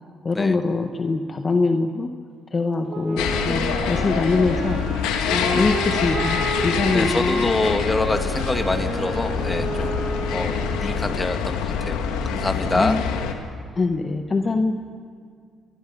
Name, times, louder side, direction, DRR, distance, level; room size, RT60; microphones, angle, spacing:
voice 1, 0.2-2.1 2.5-4.8 5.3-7.5 12.8-13.1 13.7-14.7, left 3 dB, 40° left, 5 dB, 1.6 m, -23 dB
Wind instrument woodwind instrument, 2.9-11.2, right 1 dB, 60° right, 5.0 m, -30 dB
sound 1, 3.2-13.3, left 6 dB, 85° left, 2.0 m, -25 dB
voice 2, 6.9-10.0 10.3-12.0 12.3-13.0, left 2 dB, 20° left, 7 dB, 2.1 m, -26 dB
28.0 x 22.5 x 5.5 m, 2.1 s
supercardioid pair, 55°, 0 cm